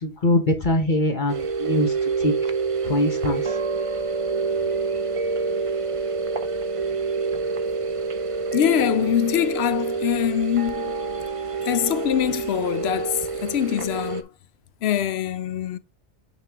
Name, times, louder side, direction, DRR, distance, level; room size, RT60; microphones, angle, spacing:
voice 1, 0.0-1.9 2.2-2.3 2.9-3.4, left 1 dB, 45° left, 1.1 m, -22 dB
sound 1, 1.3-14.2, right 4 dB, 40° right, 0.5 m, -27 dB
voice 2, 8.5-10.9 11.7-14.3 14.8-15.8, left 11 dB, 70° left, 0.8 m, -23 dB
8.8 x 3.6 x 3.4 m
omnidirectional pair, 1.2 m